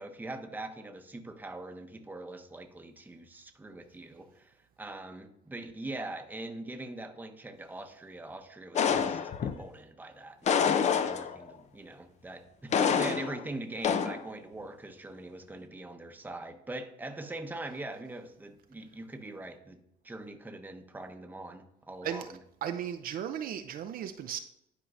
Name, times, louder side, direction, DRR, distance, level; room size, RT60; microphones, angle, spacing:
voice 1, 0.0-19.8 20.0-22.4, right 2 dB, 10° right, 0.8 m, -42 dB
sound 1, 8.8-9.6 10.5-11.5 12.7-13.4 13.8-14.2, left 7 dB, 45° left, 0.5 m, -27 dB
voice 2, 22.6-24.4, right 9 dB, 60° right, 0.5 m, -35 dB
11.0 x 4.5 x 2.6 m
cardioid pair, 110°, 17 cm